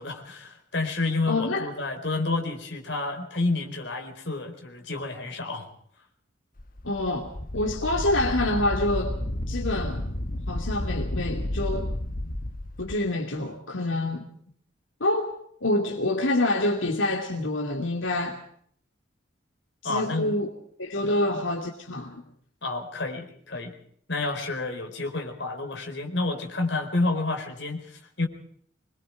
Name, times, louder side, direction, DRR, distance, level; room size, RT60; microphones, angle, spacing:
voice 1, 0.0-5.7 19.8-20.3 22.6-23.8 24.1-28.3, left 2 dB, 60° left, 4 dB, 4.5 m, -29 dB
voice 2, 1.3-1.7 6.8-9.2 9.5-10.1 10.5-11.9 12.8-14.3 15.0-18.4 19.8-20.5 20.8-22.2, left 2 dB, 85° left, 3 dB, 2.6 m, -27 dB
Wind, 6.6-13.0, left 1 dB, 45° left, 1.2 m, -31 dB
25.5 x 21.5 x 4.8 m, 0.62 s
head